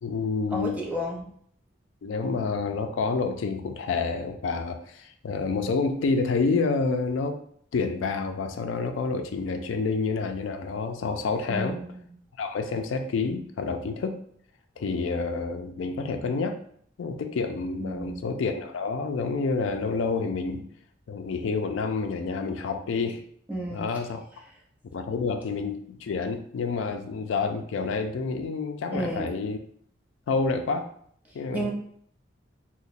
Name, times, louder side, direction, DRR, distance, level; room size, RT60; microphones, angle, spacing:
voice 1, 0.0-0.7 2.0-7.4 7.7-11.8 12.4-14.2 14.8-16.6 17.0-20.7 21.1-23.2 23.7-24.2 24.9-29.6 30.3-30.9 31.3-31.7, left 4 dB, 80° left, 6 dB, 0.4 m, -28 dB
voice 2, 0.5-1.3 11.5-12.0 17.8-18.2 23.5-23.9 28.9-29.3 31.5-31.7, right 1 dB, 10° right, -3 dB, 0.6 m, -31 dB
3.0 x 2.1 x 4.0 m, 0.62 s
head